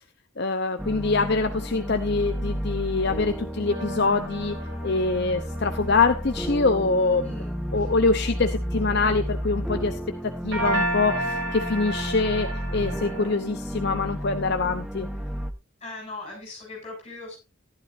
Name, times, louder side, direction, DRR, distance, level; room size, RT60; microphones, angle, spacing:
voice 1, 0.4-4.6 4.8-7.2 7.7-10.0 10.2-15.1, left 3 dB, 50° left, 7 dB, 0.7 m, -24 dB
sound 1, 0.8-15.5, equal, 5° right, 0.9 m, -32 dB
sound 2, 3.7-7.2 10.5-13.4, right 1 dB, 65° right, 5.7 m, -32 dB
voice 2, 7.2-7.6 15.8-17.4, left 2 dB, 25° left, 1 dB, 7.7 m, -39 dB
14.5 x 11.5 x 2.6 m, 0.28 s
head